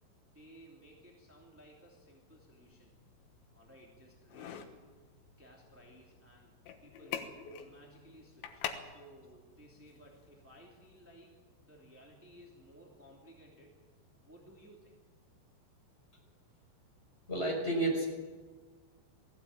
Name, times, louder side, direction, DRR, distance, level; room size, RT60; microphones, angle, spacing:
voice 1, 0.3-2.9 3.5-4.7 5.4-6.5 6.8-11.3 11.6-13.8 14.2-14.9, right 1 dB, 5° right, -3 dB, 1.7 m, -58 dB
sound 1, 2.3-11.1, left 9 dB, 85° left, 3.6 m, -47 dB
voice 2, 17.3-18.1, right 2 dB, 15° left, 0 dB, 5.1 m, -30 dB
19.5 x 16.0 x 8.8 m, 1.5 s
omnidirectional pair, 5.1 m